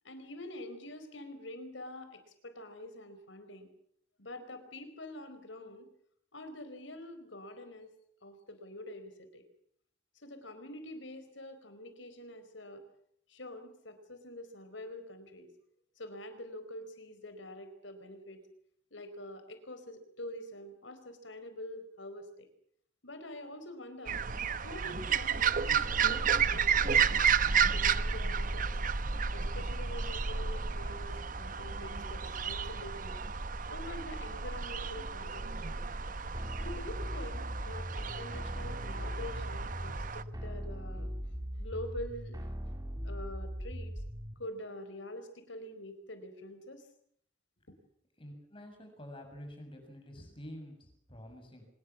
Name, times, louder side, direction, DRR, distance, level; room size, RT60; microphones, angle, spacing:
voice 1, 0.0-3.7 4.2-5.9 6.3-7.9 8.2-9.4 10.2-12.8 13.3-15.5 16.0-18.4 18.9-22.5 23.0-24.2 24.6-27.3 27.7-28.7 29.3-33.2 33.7-35.6 36.6-41.1 41.6-42.5 43.0-43.9 44.4-46.8 47.7-47.8, left 1 dB, 85° left, 9 dB, 4.7 m, -46 dB
sound 1, 24.1-40.2, right 6 dB, 45° right, 0.9 m, -32 dB
sound 2, 36.3-44.3, equal, 20° right, 3.3 m, -39 dB
voice 2, 48.2-51.7, equal, 30° left, 4 dB, 6.9 m, -48 dB
25.0 x 20.5 x 7.4 m, 0.65 s
head